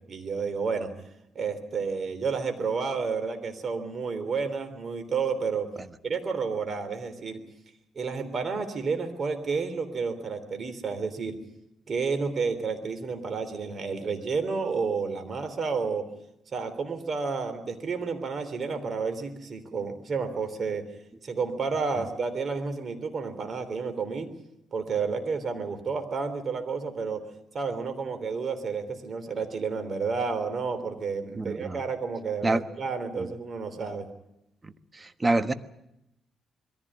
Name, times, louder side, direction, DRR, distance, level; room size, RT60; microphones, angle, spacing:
voice 1, 0.1-0.9 1.4-5.7 6.0-7.4 8.0-11.4 11.9-16.1 16.5-20.8 21.2-24.3 24.7-27.2 27.5-34.1, right 5 dB, 45° right, 8 dB, 3.4 m, -31 dB
voice 2, 31.4-31.8 32.4-32.6 33.2-33.3 34.6-35.5, right 2 dB, 25° right, 11 dB, 1.2 m, -27 dB
22.0 x 15.0 x 9.9 m, 0.85 s
cardioid pair, 95°, 0 cm